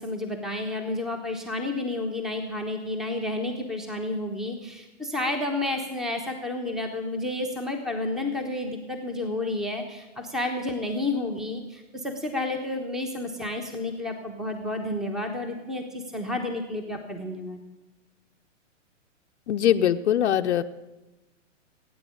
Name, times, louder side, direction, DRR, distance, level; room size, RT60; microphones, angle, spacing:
voice 1, 0.0-17.6, left 2 dB, ahead, 5 dB, 1.0 m, -31 dB
voice 2, 19.5-20.6, left 10 dB, 60° left, 7 dB, 0.8 m, -22 dB
17.5 x 9.2 x 8.5 m, 1.1 s
hypercardioid pair, 150°, 38 cm